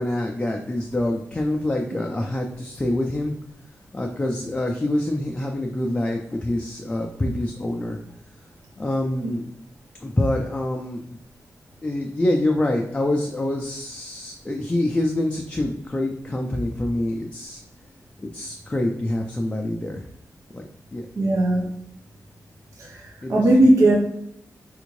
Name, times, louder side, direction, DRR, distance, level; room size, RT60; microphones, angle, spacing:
voice 1, 0.0-3.3 3.9-8.0 8.8-9.5 10.0-11.0 11.8-17.6 18.2-20.0 20.5-21.1 23.2-23.5, left 1 dB, 20° left, 1 dB, 0.3 m, -26 dB
voice 2, 21.2-21.6 22.8-23.0 23.3-23.9, right 1 dB, 65° right, -2 dB, 0.6 m, -17 dB
3.5 x 2.5 x 3.1 m, 0.74 s
wide cardioid pair, 140°, 6 cm